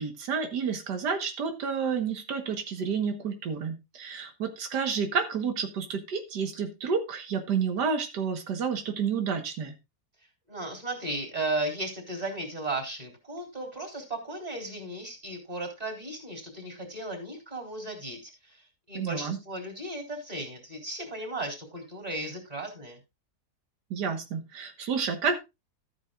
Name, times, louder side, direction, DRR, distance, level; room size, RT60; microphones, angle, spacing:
voice 1, 0.0-9.8 18.9-19.4 23.9-25.4, right 6 dB, 90° right, 6 dB, 1.9 m, -30 dB
voice 2, 10.5-23.0, right 2 dB, 25° right, 2 dB, 3.8 m, -35 dB
13.5 x 9.0 x 2.4 m, 0.24 s
omnidirectional pair, 1.7 m